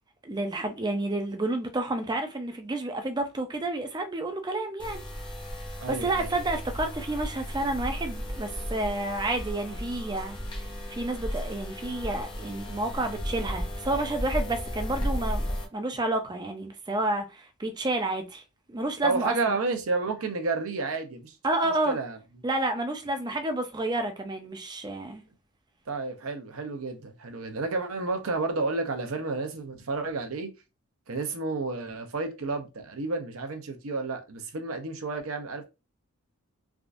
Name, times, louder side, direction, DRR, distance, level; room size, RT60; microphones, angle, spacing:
voice 1, 0.2-5.0 5.9-10.4 10.9-18.4 18.7-19.6 21.4-22.0 22.4-25.2, right 2 dB, 20° right, 0.5 m, -30 dB
sound 1, 4.8-15.7, equal, 20° left, 0.7 m, -34 dB
voice 2, 5.8-6.3 19.0-21.3 21.6-22.2 25.9-30.5 31.1-35.6, right 3 dB, 70° right, 0.7 m, -31 dB
3.5 x 2.5 x 2.4 m
head